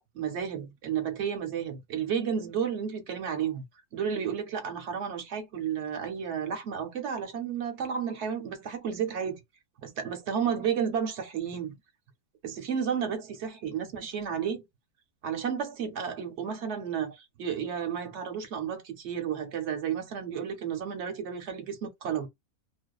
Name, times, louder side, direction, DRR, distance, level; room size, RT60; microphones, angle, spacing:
voice 1, 0.0-3.6 3.9-9.4 9.8-11.8 12.4-14.6 15.2-22.3, right 7 dB, 55° right, 0.9 m, -32 dB
2.5 x 2.3 x 2.3 m
omnidirectional pair, 1.6 m